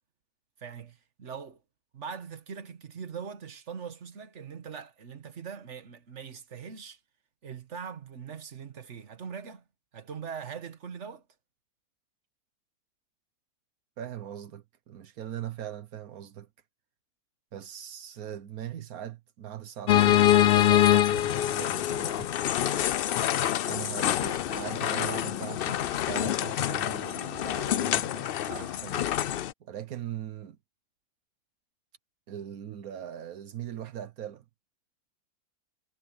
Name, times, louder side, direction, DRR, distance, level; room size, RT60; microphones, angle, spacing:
voice 1, 0.6-1.6 1.9-7.0 7.4-9.6 9.9-11.2, right 6 dB, 55° right, 1.8 m, -41 dB
voice 2, 14.0-16.5 17.5-22.3 23.7-29.1 29.6-30.6 32.3-34.4, right 10 dB, 80° right, 1.4 m, -40 dB
sound 1, 19.9-29.5, left 12 dB, 70° left, 0.5 m, -25 dB
omnidirectional pair, 1.5 m